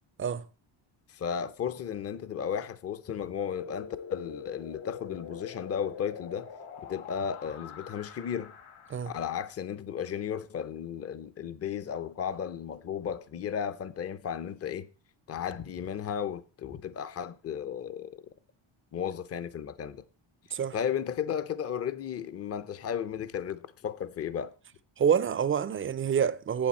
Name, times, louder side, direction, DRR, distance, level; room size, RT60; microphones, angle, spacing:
voice 1, 1.1-6.5 6.8-8.5 9.1-14.9 15.3-18.2 18.9-20.0 20.7-24.5, left 8 dB, 30° left, 0.5 m, -34 dB
sound 1, 3.5-9.4, left 7 dB, 75° left, 1.8 m, -44 dB
voice 2, 25.0-26.7, right 8 dB, 30° right, 0.4 m, -27 dB
8.8 x 7.7 x 4.2 m
cardioid pair, 120°, 49 cm